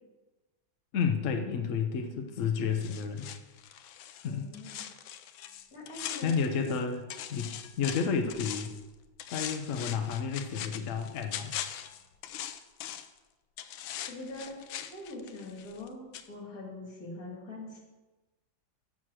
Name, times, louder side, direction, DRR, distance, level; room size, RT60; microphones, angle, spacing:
voice 1, 0.9-3.3 4.2-4.5 6.2-8.7 9.3-11.5, left 6 dB, 65° left, 5 dB, 0.8 m, -31 dB
voice 2, 1.6-2.3 4.2-4.8 5.7-6.4 14.0-17.8, left 2 dB, 45° left, -2 dB, 2.8 m, -44 dB
sound 1, 2.8-6.8 7.1-8.8 9.2-13.2 13.6-15.9 16.1-16.3, left 11 dB, 80° left, 1.4 m, -41 dB
7.6 x 7.4 x 6.3 m, 1.2 s
omnidirectional pair, 2.2 m